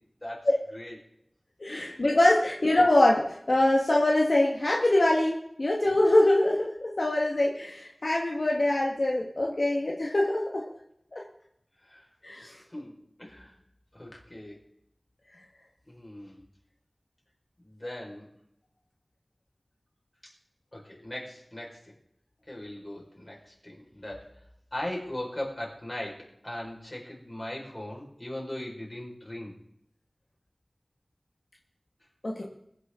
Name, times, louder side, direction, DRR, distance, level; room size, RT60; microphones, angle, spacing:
voice 1, 0.2-1.0 1.7-2.0 2.4-2.5 11.8-12.0 12.7-13.6 13.9-14.6 15.9-16.4 17.6-18.3 20.2-20.3 20.7-21.9 22.5-24.4 24.7-29.6, left 1 dB, 35° left, -2 dB, 5.2 m, -39 dB
voice 2, 1.6-10.6 11.1-11.2 12.2-12.6 32.2-32.4, left 1 dB, 70° left, -2 dB, 1.8 m, -24 dB
22.0 x 9.9 x 3.9 m, 0.76 s
wide cardioid pair, 50°, 0 cm